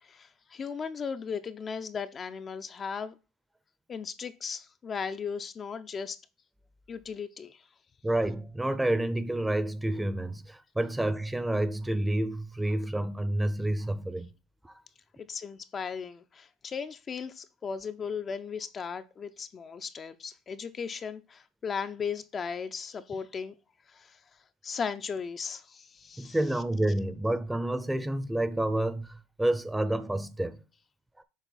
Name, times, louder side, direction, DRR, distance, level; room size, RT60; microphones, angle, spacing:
voice 1, 0.0-3.1 3.9-6.2 6.9-7.6 15.2-23.6 23.9-24.2 24.6-26.4, left 6 dB, 35° left, 0.5 m, -37 dB
voice 2, 8.0-14.3 14.6-14.7 26.2-30.6, right 1 dB, 10° right, 0.6 m, -29 dB
7.3 x 3.2 x 4.0 m
supercardioid pair, 95°, 0 cm